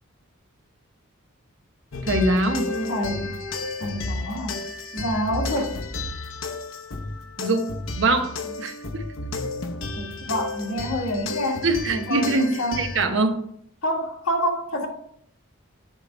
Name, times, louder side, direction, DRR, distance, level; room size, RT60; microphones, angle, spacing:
sound 1, 1.9-13.0, left 3 dB, 65° left, 0.8 m, -32 dB
voice 1, 2.0-2.7 7.4-9.0 11.6-13.4, right 2 dB, 60° right, 6 dB, 0.9 m, -23 dB
voice 2, 2.7-3.4 3.8-4.6 4.9-5.7 9.9-12.8 13.8-14.9, equal, 85° left, 1 dB, 1.7 m, -27 dB
9.8 x 3.4 x 5.1 m, 0.68 s
head